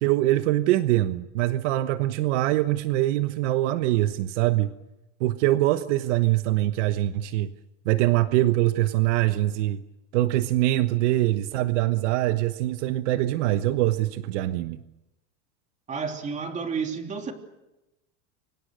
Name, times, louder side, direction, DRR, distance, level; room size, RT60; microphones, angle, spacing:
voice 1, 0.0-4.7 5.2-7.5 7.8-9.8 10.1-14.8, right 15 dB, 65° right, 11 dB, 1.2 m, -23 dB
voice 2, 15.9-17.3, right 5 dB, 20° right, 4 dB, 3.2 m, -31 dB
30.0 x 25.0 x 6.4 m, 0.96 s
supercardioid pair, 160°, 39 cm